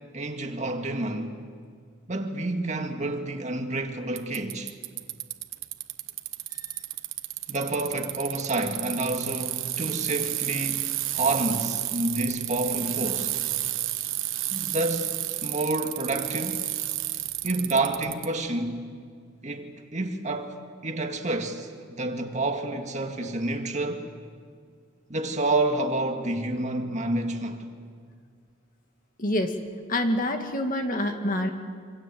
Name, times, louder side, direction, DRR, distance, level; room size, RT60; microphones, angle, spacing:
voice 1, 0.1-1.4 2.1-4.7 7.5-13.3 14.5-16.6 17.4-18.9 19.4-20.6 20.8-24.1 25.1-27.6, right 2 dB, 35° right, 2.0 m, -29 dB
Bicycle, 4.2-18.3, right 14 dB, 75° right, 1.2 m, -31 dB
voice 2, 29.2-29.6 29.9-31.5, left 1 dB, 45° left, 2.1 m, -27 dB
26.5 x 25.5 x 7.7 m
head